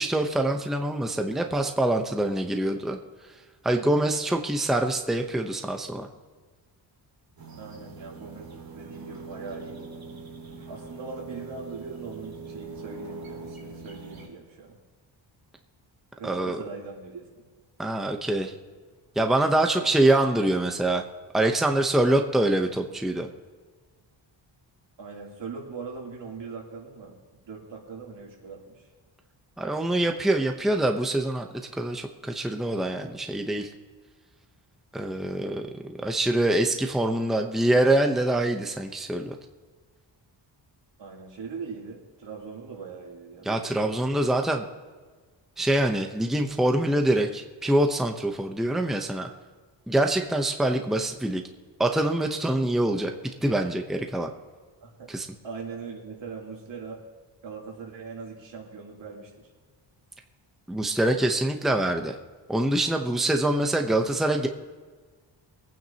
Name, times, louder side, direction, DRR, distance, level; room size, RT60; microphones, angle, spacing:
voice 1, 0.0-3.0 3.6-6.1 16.2-16.6 17.8-18.5 19.2-21.0 21.3-23.3 29.6-31.5 31.7-33.7 34.9-39.3 43.4-44.6 45.6-49.3 49.9-51.4 51.8-53.1 53.4-54.3 55.1-55.3 60.7-62.1 62.5-64.5, right 1 dB, ahead, 4 dB, 0.8 m, -25 dB
sound 1, 7.4-14.3, right 4 dB, 50° right, 3.1 m, -42 dB
voice 2, 7.6-9.9 10.7-14.8 16.2-17.4 19.6-19.9 25.0-27.2 27.4-28.9 41.0-43.7 54.8-55.1 55.4-57.0 57.4-59.3, right 4 dB, 70° right, -2 dB, 3.2 m, -40 dB
24.0 x 9.2 x 2.9 m, 1.4 s
wide cardioid pair, 130°, 46 cm